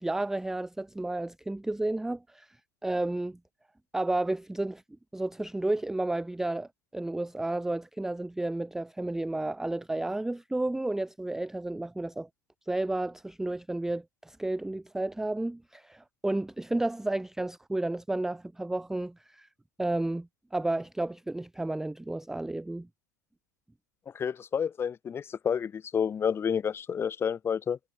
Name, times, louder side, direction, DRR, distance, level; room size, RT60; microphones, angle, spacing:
voice 1, 0.0-2.6 2.8-3.4 3.9-4.8 5.1-12.3 12.7-19.5 19.8-22.9, right 2 dB, 5° right, 0.5 m, -32 dB
voice 2, 24.1-27.8, left 7 dB, 25° left, 1.9 m, -30 dB
hypercardioid pair, 105°, 10 cm